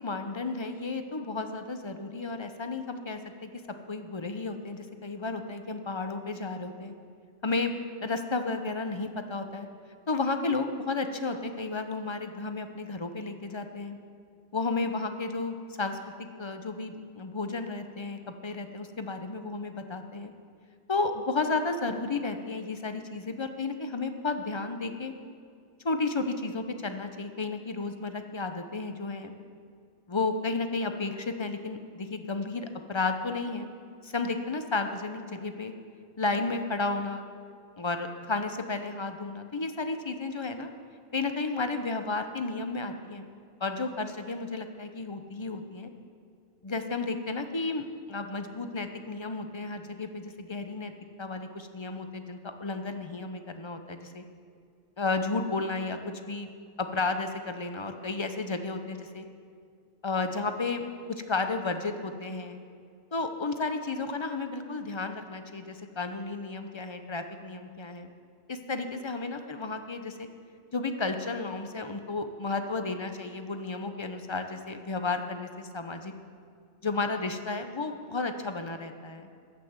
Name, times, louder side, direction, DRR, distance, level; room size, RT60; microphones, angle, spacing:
voice 1, 0.0-3.5 3.9-6.9 7.4-7.7 8.0-9.7 10.1-14.0 14.5-20.3 20.9-25.1 25.8-29.3 30.1-33.7 34.0-35.7 36.2-37.3 37.8-40.7 41.1-43.3 43.6-45.9 46.6-50.9 51.2-54.2 55.0-56.5 56.8-59.3 60.0-60.8 61.1-62.6 63.1-68.1 68.5-70.3 70.7-76.1 76.8-79.3, left 3 dB, 30° left, 7 dB, 0.6 m, -32 dB
13.5 x 5.9 x 7.9 m, 2.3 s
omnidirectional pair, 1.1 m